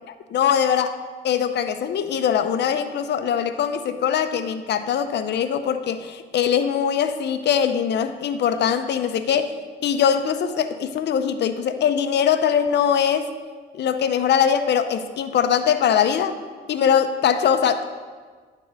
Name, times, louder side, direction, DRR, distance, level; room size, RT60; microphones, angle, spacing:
voice 1, 0.1-1.0 1.2-9.5 9.8-13.3 13.7-16.3 16.7-17.8, left 8 dB, 60° left, 9 dB, 0.6 m, -22 dB
9.9 x 3.8 x 6.0 m, 1.5 s
cardioid pair, 90°, 20 cm